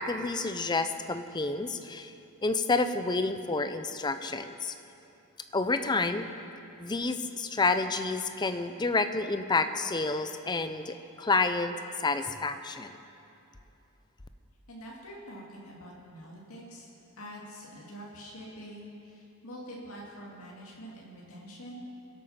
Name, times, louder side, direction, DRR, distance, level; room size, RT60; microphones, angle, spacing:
voice 1, 0.0-2.1 2.4-4.7 5.5-6.3 6.8-12.9, left 3 dB, 20° left, 9 dB, 0.5 m, -29 dB
voice 2, 14.7-16.9 17.2-21.8, equal, 75° left, -4 dB, 2.4 m, -45 dB
22.0 x 8.6 x 5.7 m, 2.8 s
head